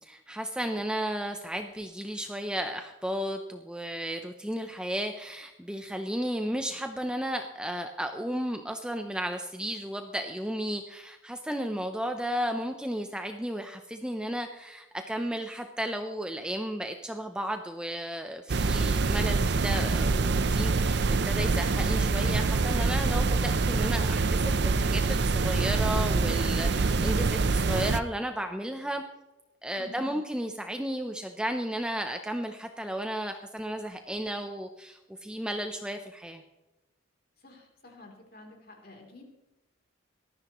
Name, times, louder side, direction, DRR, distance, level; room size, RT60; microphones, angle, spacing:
voice 1, 0.0-29.0 29.6-36.4, equal, 5° right, 5 dB, 0.6 m, -34 dB
sound 1, 18.5-28.0, right 3 dB, 55° right, 0.5 m, -25 dB
voice 2, 29.8-30.1 37.4-39.2, left 2 dB, 45° left, 1 dB, 3.2 m, -50 dB
18.5 x 13.5 x 3.0 m, 1.0 s
head